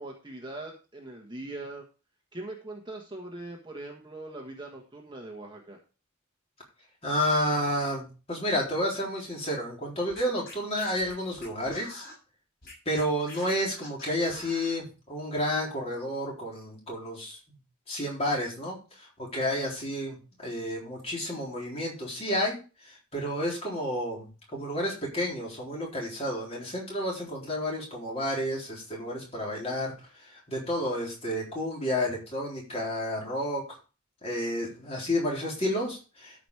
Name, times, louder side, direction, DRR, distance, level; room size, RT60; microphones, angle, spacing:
voice 1, 0.0-1.8 2.3-5.8, right 2 dB, 20° right, 0 dB, 1.5 m, -41 dB
voice 2, 7.0-12.0 12.9-17.4 17.9-22.6 22.9-24.3 24.5-29.9 30.2-33.6 34.2-36.5, equal, 30° left, -2 dB, 3.8 m, -31 dB
Scratching (performance technique), 10.1-12.1 12.6-14.8, left 2 dB, 45° left, 6.9 m, -46 dB
13.0 x 5.2 x 4.8 m, 0.34 s
head